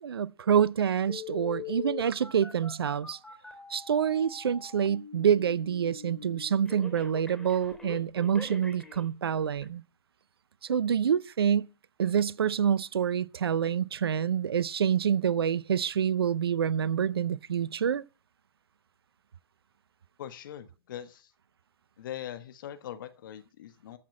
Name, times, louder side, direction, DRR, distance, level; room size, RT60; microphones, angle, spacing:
voice 1, 0.0-3.2 3.7-9.8 10.6-11.7 12.0-18.0, right 8 dB, 75° right, 0.6 m, -27 dB
Telephone, 1.1-9.1 9.6-9.7, left 6 dB, 5° left, 4.0 m, -43 dB
voice 2, 20.2-21.3 22.0-24.0, left 10 dB, 55° left, 1.6 m, -41 dB
14.0 x 6.0 x 8.7 m
hypercardioid pair, 120°, 13 cm